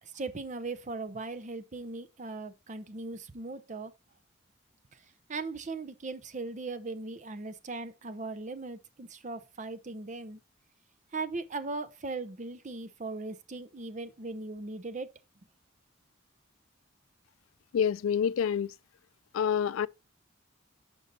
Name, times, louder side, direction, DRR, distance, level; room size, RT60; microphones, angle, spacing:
voice 1, 0.0-3.9 5.3-10.4 11.1-15.1, right 3 dB, 35° right, 0.6 m, -38 dB
voice 2, 17.7-18.7 19.3-19.9, left 8 dB, 75° left, 0.3 m, -27 dB
6.6 x 5.3 x 4.0 m
head